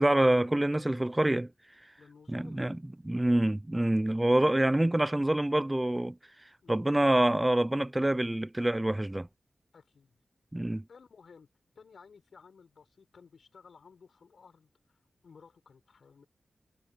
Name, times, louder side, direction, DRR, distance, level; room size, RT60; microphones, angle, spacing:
voice 1, 0.0-1.5 2.3-2.8 3.0-6.2 6.7-9.3 10.5-10.8, right 1 dB, 15° right, 0.4 m, -26 dB
voice 2, 2.0-2.8 6.6-7.2 9.7-10.2 10.9-11.5 11.7-16.3, left 5 dB, 75° left, 6.6 m, -56 dB
wide cardioid pair, 100°, 0 cm